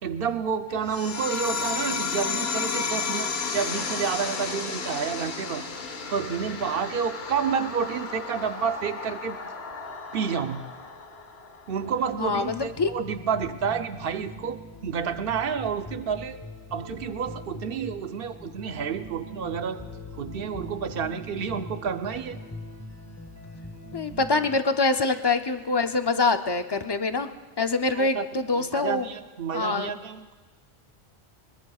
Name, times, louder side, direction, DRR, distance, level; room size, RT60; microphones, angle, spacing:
voice 1, 0.0-5.6 6.1-9.4 10.1-10.6 11.7-16.4 16.7-19.8 20.2-22.4 27.9-28.3 28.5-30.3, right 6 dB, 65° right, 9 dB, 0.9 m, -30 dB
sound 1, 0.9-11.9, left 5 dB, 70° left, 1.3 m, -33 dB
sound 2, 12.1-24.6, left 1 dB, 15° left, 1.0 m, -42 dB
voice 2, 12.2-12.9 23.9-27.3 27.6-29.1 29.5-30.0, left 3 dB, 35° left, 8 dB, 0.4 m, -25 dB
22.5 x 21.5 x 2.4 m, 1.3 s
omnidirectional pair, 1.1 m